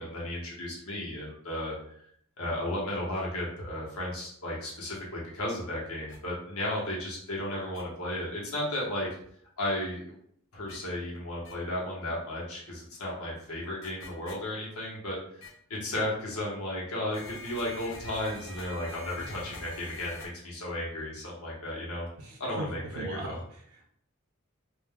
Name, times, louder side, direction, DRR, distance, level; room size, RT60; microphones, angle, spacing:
voice 1, 0.0-1.7 2.4-9.1 9.6-10.2 10.5-15.2 15.7-22.1 22.4-23.4, left 1 dB, 85° left, -4 dB, 1.0 m, -34 dB
sound 1, 6.1-6.2 7.7-7.8 10.7-10.8 11.4-11.5 13.8-14.3 15.4-15.5 17.1-20.3, left 2 dB, 60° left, 0.6 m, -45 dB
voice 2, 22.2-23.9, right 1 dB, 85° right, -2 dB, 0.6 m, -39 dB
3.5 x 2.5 x 2.2 m, 0.65 s
head